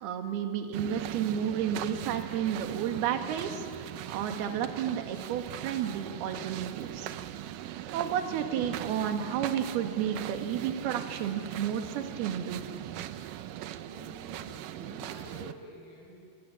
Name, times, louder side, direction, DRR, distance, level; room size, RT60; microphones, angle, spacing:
voice 1, 0.0-7.1 7.9-12.7, right 9 dB, 70° right, 5 dB, 3.5 m, -32 dB
sound 1, 0.7-15.5, right 12 dB, 85° right, 1.9 m, -40 dB
voice 2, 13.8-16.2, equal, 25° right, -9 dB, 8.0 m, -49 dB
27.0 x 24.0 x 8.9 m, 2.3 s
omnidirectional pair, 4.9 m